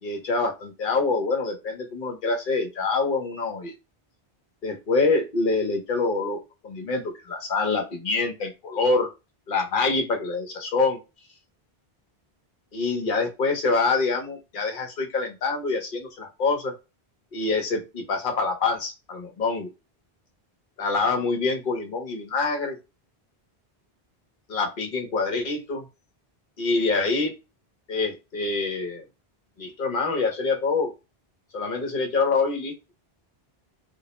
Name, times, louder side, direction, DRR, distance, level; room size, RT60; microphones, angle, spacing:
voice 1, 0.0-3.7 4.6-9.1 9.5-11.0 12.7-16.7 17.3-19.7 20.8-22.8 24.5-25.8 26.6-27.3 27.9-29.0 29.6-30.9 31.5-32.7, left 3 dB, 55° left, 3 dB, 0.9 m, -25 dB
2.3 x 2.0 x 2.9 m, 0.26 s
omnidirectional pair, 1.0 m